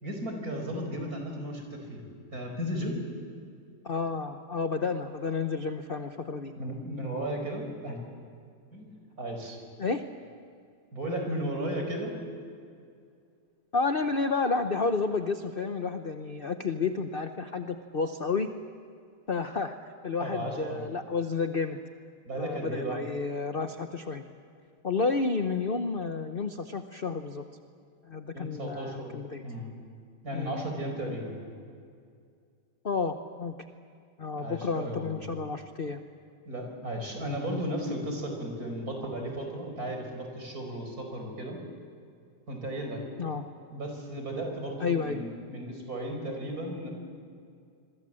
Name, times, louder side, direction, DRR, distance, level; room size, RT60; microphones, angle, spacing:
voice 1, 0.0-2.0 2.3-3.0 6.6-8.0 8.7-9.6 10.9-12.2 20.2-20.9 22.3-23.0 28.3-29.2 29.4-29.7 30.2-31.4 34.3-35.2 36.5-41.6 42.5-43.0 43.7-46.9, right 1 dB, 40° right, 3 dB, 5.2 m, -35 dB
voice 2, 3.8-6.5 9.8-10.0 13.7-18.5 19.3-19.8 20.0-21.8 22.4-24.2 24.8-27.4 28.0-29.4 30.3-30.6 32.8-33.5 34.2-36.0 43.2-43.4 44.8-45.2, left 4 dB, 55° left, 7 dB, 0.6 m, -31 dB
27.0 x 23.0 x 7.7 m, 2.3 s
omnidirectional pair, 2.3 m